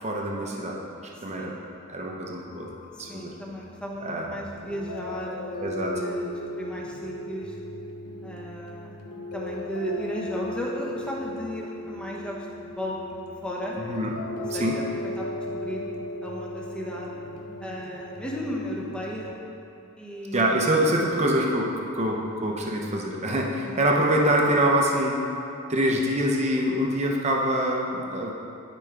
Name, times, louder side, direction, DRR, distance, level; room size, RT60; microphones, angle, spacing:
voice 1, 0.0-0.8 1.2-1.5 1.9-2.7 3.0-3.3 4.0-4.3 5.6-6.0 13.9-14.1 14.5-14.8 20.3-25.2 25.7-28.3, right 1 dB, 30° right, -1 dB, 0.8 m, -25 dB
sound 1, 2.5-19.3, left 2 dB, 85° left, 0.8 m, -37 dB
voice 2, 2.9-5.6 5.9-7.5 8.2-9.0 9.3-12.4 12.7-13.0 13.4-13.8 14.5-15.3 15.5-15.8 16.2-17.1 17.6-19.3 20.0-21.1 23.6-23.8, equal, 5° left, -4 dB, 0.9 m, -35 dB
12.5 x 5.2 x 3.4 m, 2.8 s
head